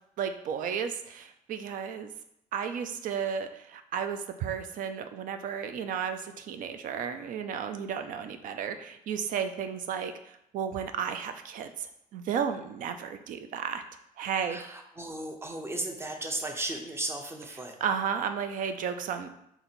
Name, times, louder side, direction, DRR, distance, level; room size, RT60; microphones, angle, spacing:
voice 1, 0.2-2.1 2.5-13.8 14.2-14.6 17.8-19.3, right 7 dB, 75° right, 8 dB, 0.4 m, -33 dB
voice 2, 14.5-17.7, right 2 dB, 20° right, 4 dB, 0.6 m, -35 dB
3.9 x 2.9 x 4.3 m, 0.76 s
cardioid pair, 130°, 14 cm